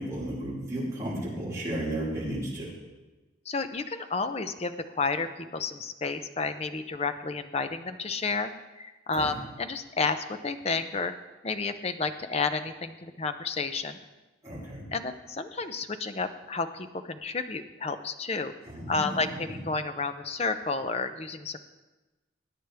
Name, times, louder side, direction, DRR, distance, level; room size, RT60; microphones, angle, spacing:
voice 1, 0.0-2.7 9.1-9.4 14.4-14.8 18.6-19.6, right 1 dB, 15° right, -8 dB, 5.2 m, -34 dB
voice 2, 3.5-8.5 8.8-11.1 11.4-14.0 14.9-18.5 18.9-21.6, left 4 dB, 35° left, 9 dB, 0.6 m, -31 dB
20.0 x 9.3 x 3.5 m, 1.1 s
head